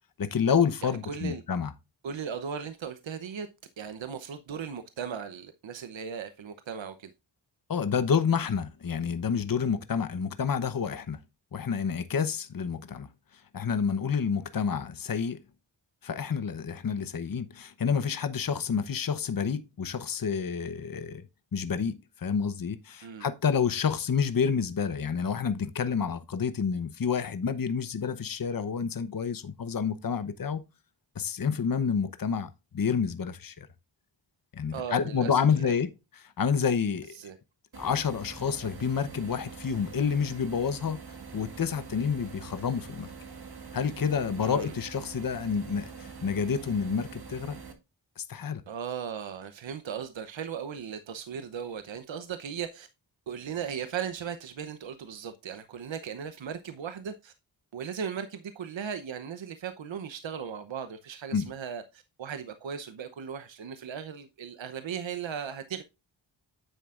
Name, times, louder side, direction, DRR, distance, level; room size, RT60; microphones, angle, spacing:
voice 1, 0.2-1.7 7.7-11.2 11.5-15.4 16.0-21.2 21.5-30.6 31.1-33.7 34.5-37.2 37.8-41.0 41.3-43.1 43.7-47.6 48.2-48.6 61.3-61.5, left 6 dB, 45° left, 0.9 m, -29 dB
voice 2, 0.8-1.4 2.0-3.5 3.8-7.1 23.0-23.3 34.7-35.8 37.2-37.3 44.4-44.7 48.7-52.9 53.3-57.3 57.7-65.8, right 7 dB, 75° right, 0.9 m, -37 dB
sound 1, 37.7-47.7, right 5 dB, 55° right, 2.1 m, -44 dB
10.0 x 7.6 x 2.5 m
cardioid pair, 55°, 46 cm